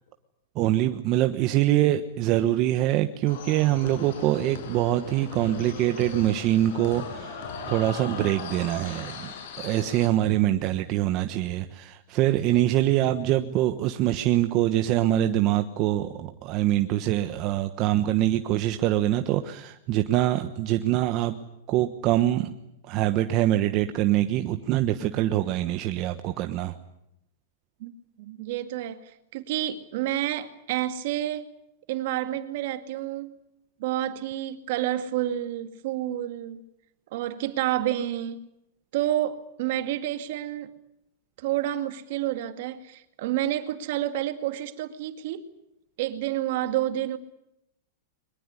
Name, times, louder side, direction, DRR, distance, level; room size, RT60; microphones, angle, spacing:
voice 1, 0.5-9.3 9.6-21.3 21.7-22.5 22.8-26.8, right 13 dB, 35° right, 1.2 m, -24 dB
sound 1, 3.3-10.1, left 5 dB, 60° left, 6.6 m, -38 dB
voice 2, 28.2-31.5 31.9-33.4 33.8-36.6 37.1-38.4 38.9-40.8 41.4-45.5 46.0-47.2, right 13 dB, 55° right, 2.2 m, -29 dB
23.0 x 21.0 x 9.8 m
supercardioid pair, 155°, 0 cm